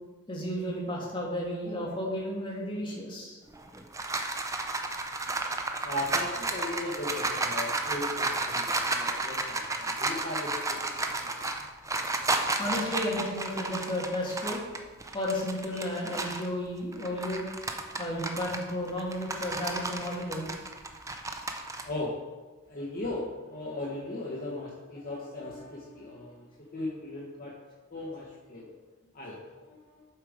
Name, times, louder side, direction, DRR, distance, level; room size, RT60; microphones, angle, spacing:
voice 1, 0.3-3.4 3.9-4.1 5.4-5.5 12.0-12.1 12.6-14.6 15.1-17.4 18.0-20.5, left 1 dB, 25° left, -4 dB, 1.8 m, -33 dB
sound 1, 3.5-16.5 16.9-21.8, right 2 dB, 15° right, 0.5 m, -32 dB
voice 2, 5.8-11.6 21.8-22.2 22.7-27.5 27.9-28.7 29.1-30.1, left 2 dB, 45° left, -4 dB, 1.1 m, -37 dB
7.6 x 4.8 x 4.9 m, 1.3 s
head